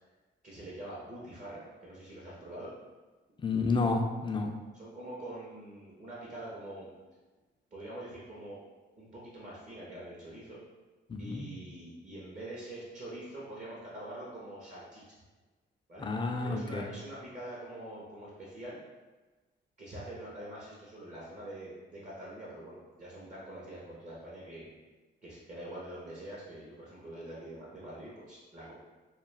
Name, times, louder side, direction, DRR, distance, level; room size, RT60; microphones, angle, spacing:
voice 1, 0.4-2.7 4.8-6.9 7.7-8.6 9.0-10.6 11.2-15.0 15.9-16.1 16.4-18.8 19.8-24.7 25.2-28.7, right 1 dB, 40° right, -6 dB, 0.7 m, -44 dB
voice 2, 3.4-4.5 11.1-11.5 16.0-16.9, left 3 dB, 25° left, 3 dB, 0.3 m, -30 dB
2.3 x 2.3 x 3.2 m, 1.2 s
cardioid pair, 90°, 20 cm